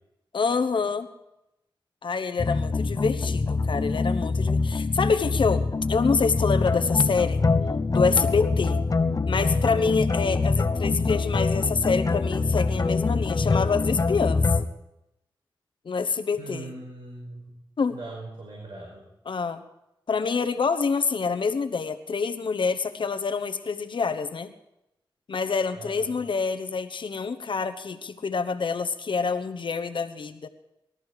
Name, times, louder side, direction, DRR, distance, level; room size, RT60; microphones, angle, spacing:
voice 1, 0.3-1.1 2.0-7.4 7.9-8.9 9.3-14.4 15.8-16.7 17.8-18.0 19.2-19.6 20.1-24.5 25.3-30.5, left 5 dB, 70° left, 9 dB, 1.1 m, -26 dB
sound 1, 2.4-14.7, left 3 dB, 45° left, 0.8 m, -24 dB
voice 2, 16.4-17.5 17.9-19.0 25.7-26.2, right 2 dB, 65° right, -2 dB, 5.4 m, -40 dB
20.5 x 13.5 x 5.0 m, 0.87 s
wide cardioid pair, 75°, 9 cm